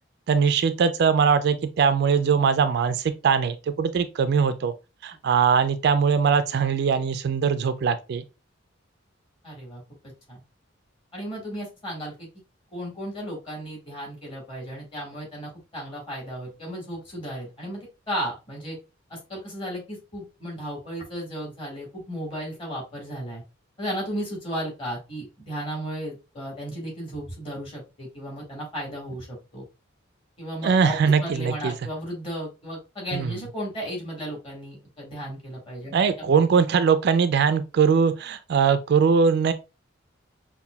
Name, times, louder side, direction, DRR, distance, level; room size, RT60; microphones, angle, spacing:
voice 1, 0.3-4.7 5.0-8.2 30.6-31.7 33.1-33.3 35.9-39.5, right 6 dB, 55° right, 0.3 m, -21 dB
voice 2, 9.4-10.4 11.1-12.3 12.7-18.8 19.1-23.4 23.8-29.6 30.4-36.3, equal, 30° left, 1.7 m, -35 dB
5.6 x 2.2 x 2.2 m
head